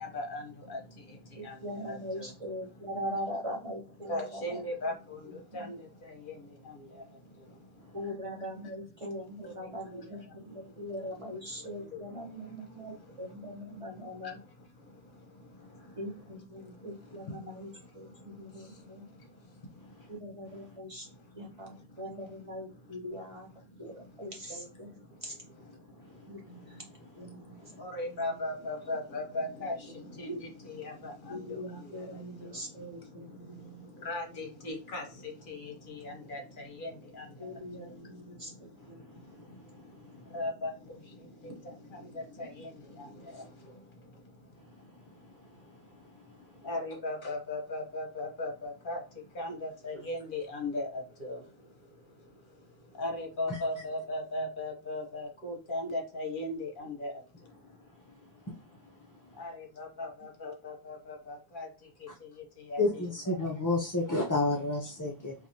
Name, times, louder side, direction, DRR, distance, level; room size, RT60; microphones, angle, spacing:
voice 1, 0.0-2.0 4.1-8.0 9.4-9.5 9.9-10.2 10.5-10.7 11.6-12.0 12.3-12.9 14.2-14.3 14.8-16.0 16.6-16.9 18.0-20.1 21.5-21.6 21.9-22.0 23.7-23.8 25.1-25.2 25.7-26.8 27.3-57.5 59.3-63.0 63.3-63.5, left 2 dB, 55° left, 1.1 m, -40 dB
voice 2, 1.3-4.9 5.3-5.7 7.9-14.4 16.0-19.1 20.1-21.1 21.3-23.5 23.8-25.3 26.3-26.8 27.2-28.4 29.9-30.0 31.3-34.4 37.4-39.6, equal, 35° right, 0.8 m, -42 dB
voice 3, 62.8-65.3, left 2 dB, 30° left, 0.3 m, -30 dB
4.6 x 2.5 x 2.7 m
omnidirectional pair, 1.1 m